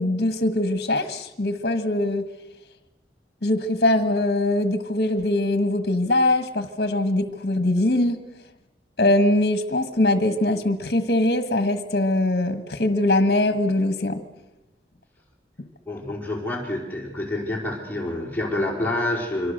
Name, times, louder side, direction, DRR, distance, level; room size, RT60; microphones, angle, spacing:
voice 1, 0.0-2.3 3.4-8.2 9.0-14.2, left 1 dB, 60° left, 9 dB, 1.5 m, -22 dB
voice 2, 15.9-19.5, left 1 dB, 10° left, -1 dB, 4.6 m, -27 dB
26.5 x 24.0 x 6.6 m, 1.0 s
head